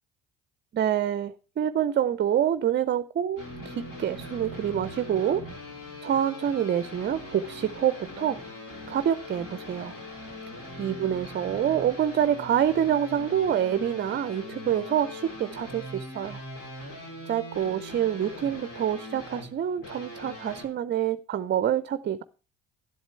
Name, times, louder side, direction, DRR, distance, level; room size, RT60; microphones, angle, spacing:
voice 1, 0.7-5.4 6.0-8.4 8.9-9.9 10.8-16.4 17.3-22.2, right 9 dB, 30° right, 0.5 m, -27 dB
sound 1, 3.4-20.7, left 1 dB, 60° left, 3.9 m, -41 dB
12.0 x 8.0 x 4.4 m
hypercardioid pair, 60°, 36 cm